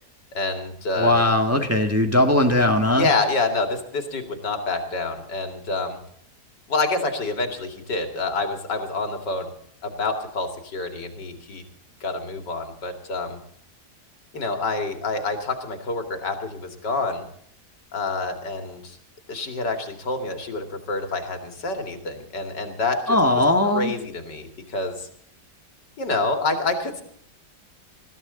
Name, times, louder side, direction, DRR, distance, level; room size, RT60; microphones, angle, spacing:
voice 1, 0.3-1.3 2.9-6.0 6.7-9.5 9.8-11.6 12.0-13.4 14.3-17.2 17.9-19.0 19.3-23.4 23.7-25.1 26.0-27.0, left 3 dB, 85° left, 6 dB, 3.0 m, -27 dB
voice 2, 1.0-3.1 23.1-23.9, left 1 dB, 10° right, 4 dB, 1.6 m, -19 dB
21.0 x 14.5 x 4.0 m, 0.65 s
omnidirectional pair, 1.8 m